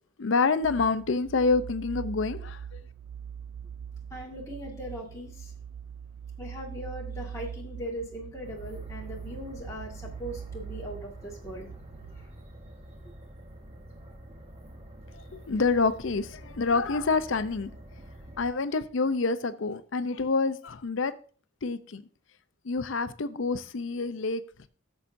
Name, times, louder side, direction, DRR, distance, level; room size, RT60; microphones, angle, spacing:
voice 1, 0.2-2.8 15.1-17.7 18.4-21.2 21.6-22.0 22.6-24.7, left 4 dB, 65° left, 0.6 m, -27 dB
sound 1, 0.6-12.3, right 8 dB, 85° right, 0.4 m, -42 dB
voice 2, 4.1-5.5 6.4-11.7, equal, 15° left, 1.8 m, -39 dB
sound 2, 8.4-18.5, right 1 dB, 30° right, 1.2 m, -47 dB
13.0 x 7.2 x 2.6 m
head